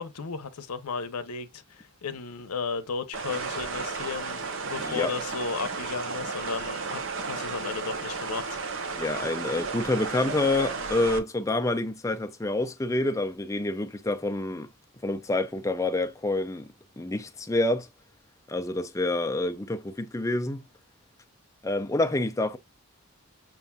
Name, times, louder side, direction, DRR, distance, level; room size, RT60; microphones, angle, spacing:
voice 1, 0.0-8.6, left 5 dB, 85° left, 0.7 m, -34 dB
sound 1, 3.1-11.2, right 4 dB, 60° right, 0.7 m, -33 dB
voice 2, 4.8-5.1 9.0-14.7 15.0-17.9 18.5-20.6 21.6-22.6, left 2 dB, 15° left, 0.4 m, -28 dB
6.8 x 2.6 x 2.3 m
head